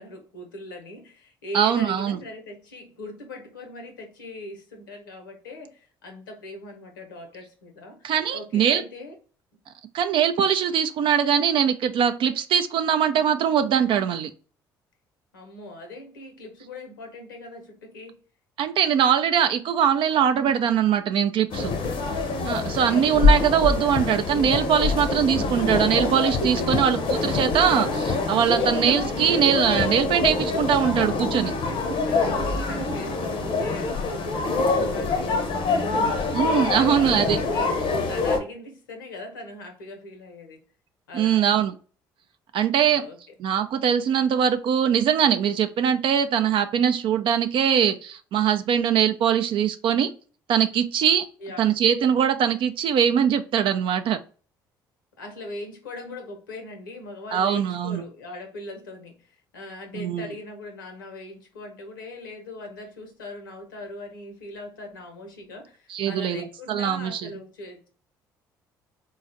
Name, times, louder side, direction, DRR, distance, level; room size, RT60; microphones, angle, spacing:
voice 1, 0.0-9.2 15.3-18.2 22.5-23.5 27.6-27.9 28.2-28.8 32.1-40.6 41.1-41.6 42.8-43.3 51.4-51.7 55.1-67.9, left 2 dB, 85° left, 4 dB, 0.8 m, -40 dB
voice 2, 1.5-2.2 8.0-8.8 9.9-14.3 18.6-21.7 22.5-31.5 36.3-37.4 41.1-41.7 42.5-43.0 43.4-50.1 50.5-51.3 51.6-54.2 57.3-58.0 59.9-60.3 65.9-67.2, right 8 dB, 55° right, 8 dB, 0.4 m, -22 dB
sound 1, 21.5-38.4, left 3 dB, 55° left, 0.6 m, -25 dB
3.9 x 2.3 x 2.5 m, 0.39 s
hypercardioid pair, 55°, 10 cm